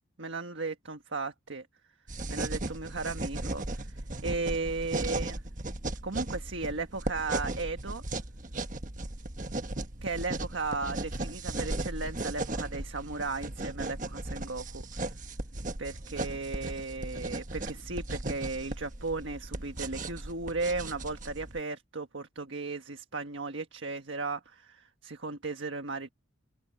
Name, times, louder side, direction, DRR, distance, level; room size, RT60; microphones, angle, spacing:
voice 1, 0.2-1.7 2.3-5.4 6.0-8.0 10.0-14.8 15.8-26.1, right 3 dB, 70° right, 1.5 m, -36 dB
sound 1, 2.1-21.6, right 2 dB, 40° right, 1.4 m, -36 dB
open air
head